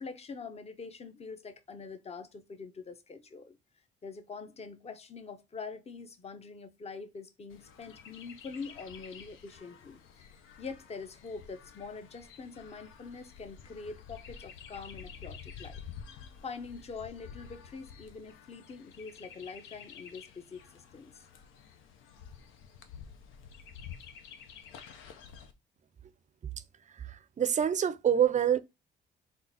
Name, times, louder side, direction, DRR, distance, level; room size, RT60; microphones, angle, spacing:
voice 1, 0.0-3.6 4.0-10.3 10.6-15.8 16.1-21.2, left 4 dB, 30° left, 0.7 m, -44 dB
Chirp tweet, 7.5-25.5, left 7 dB, 85° left, 0.7 m, -50 dB
voice 2, 26.9-28.6, right 9 dB, 35° right, 0.5 m, -27 dB
3.8 x 2.4 x 4.0 m
cardioid pair, 90°, 20 cm